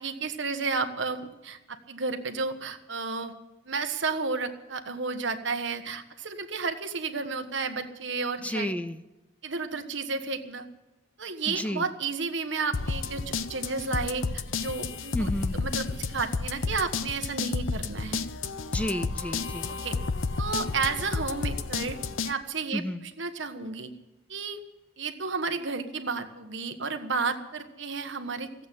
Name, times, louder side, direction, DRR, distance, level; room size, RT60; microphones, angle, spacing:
voice 1, 0.0-3.3 3.7-8.7 9.4-10.6 11.2-18.2 19.7-19.9 20.4-22.0 22.2-23.9 24.3-24.6 25.0-28.5, right 4 dB, 65° right, 7 dB, 1.4 m, -32 dB
voice 2, 8.4-9.0 11.5-11.9 15.1-15.6 18.7-19.8 22.7-23.0, left 1 dB, 5° left, 12 dB, 0.4 m, -31 dB
sound 1, 12.7-22.3, left 4 dB, 80° left, 0.7 m, -31 dB
15.0 x 8.4 x 9.9 m, 1.1 s
head